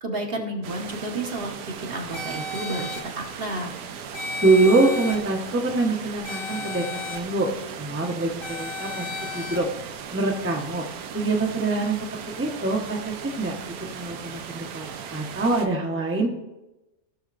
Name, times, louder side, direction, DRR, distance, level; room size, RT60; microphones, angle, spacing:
voice 1, 0.0-3.7, right 1 dB, 45° right, 1 dB, 1.2 m, -31 dB
sound 1, 0.6-15.7, right 7 dB, 90° right, 1.2 m, -38 dB
sound 2, 2.1-3.0 4.1-5.2 6.2-7.2 8.4-9.6, left 3 dB, 45° left, 1.0 m, -33 dB
voice 2, 4.4-7.5 7.8-9.1 9.3-9.7 10.1-10.9 11.1-12.0 12.4-16.3, right 3 dB, 10° right, 1 dB, 0.8 m, -24 dB
17.0 x 6.4 x 2.5 m, 1.0 s
omnidirectional pair, 1.5 m